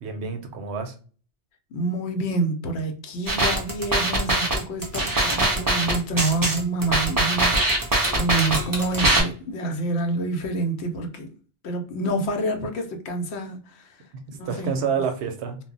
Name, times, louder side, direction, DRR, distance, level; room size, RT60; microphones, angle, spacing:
voice 1, 0.0-0.9 14.3-15.6, right 6 dB, 75° right, 0.8 m, -28 dB
voice 2, 1.7-7.6 8.1-11.3 11.6-14.0 14.4-15.0, right 2 dB, 75° left, 0.8 m, -27 dB
sound 1, 3.3-9.2, right 2 dB, 30° right, 0.4 m, -22 dB
2.1 x 2.0 x 3.7 m
omnidirectional pair, 1.2 m